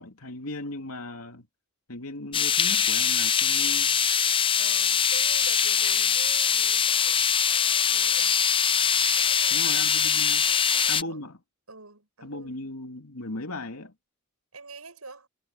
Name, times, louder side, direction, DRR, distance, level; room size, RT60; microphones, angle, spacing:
voice 1, 0.0-1.5 1.9-4.0 9.5-10.5 10.9-11.4 12.2-13.9, left 2 dB, 80° left, 2.9 m, -37 dB
sound 1, 2.3-11.0, left 7 dB, 25° left, 0.5 m, -23 dB
voice 2, 4.6-7.2 7.5-8.4 9.1-10.1 10.4-11.3 11.7-12.6 14.5-15.3, right 3 dB, 85° right, 7.9 m, -46 dB
head